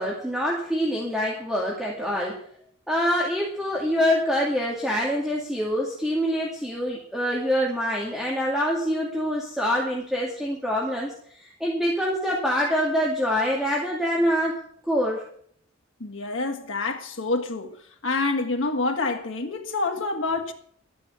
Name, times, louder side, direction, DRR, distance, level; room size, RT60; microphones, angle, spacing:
voice 1, 0.0-2.4 2.9-14.6 14.9-15.2, equal, ahead, 2.2 m, -25 dB
voice 2, 16.0-17.8 18.0-20.5, left 3 dB, 85° left, 1.9 m, -27 dB
12.0 x 9.9 x 7.0 m
head